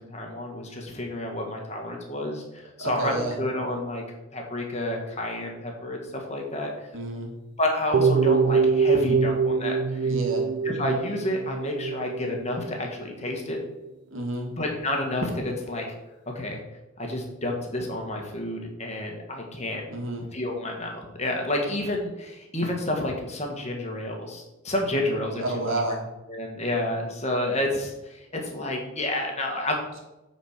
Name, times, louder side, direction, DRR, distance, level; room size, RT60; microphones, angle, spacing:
voice 1, 0.0-4.0 4.3-6.7 7.6-10.1 10.6-13.6 14.6-15.8 16.3-16.6 17.0-19.8 20.3-25.7 26.3-29.8, left 1 dB, 30° left, 1 dB, 1.6 m, -30 dB
voice 2, 2.8-3.4 6.9-7.3 10.1-10.4 14.1-14.5 19.9-20.2 25.4-26.0, right 2 dB, 70° right, 1 dB, 2.1 m, -30 dB
sound 1, 7.9-13.3 13.6-13.9, right 5 dB, 50° right, 0.4 m, -24 dB
9.3 x 4.4 x 6.6 m, 1.0 s
head